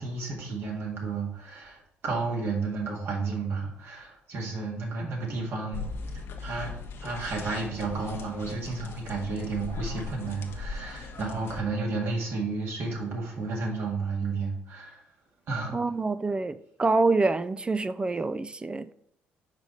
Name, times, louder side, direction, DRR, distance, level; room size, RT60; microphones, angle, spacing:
voice 1, 0.0-5.9 6.4-15.0 15.5-15.8, right 4 dB, 60° right, 1.9 m, -32 dB
sound 1, 5.7-11.6, left 4 dB, 60° left, 0.8 m, -39 dB
voice 2, 15.7-18.9, right 3 dB, 20° right, 0.3 m, -26 dB
5.0 x 4.9 x 4.0 m
supercardioid pair, 65°, 5 cm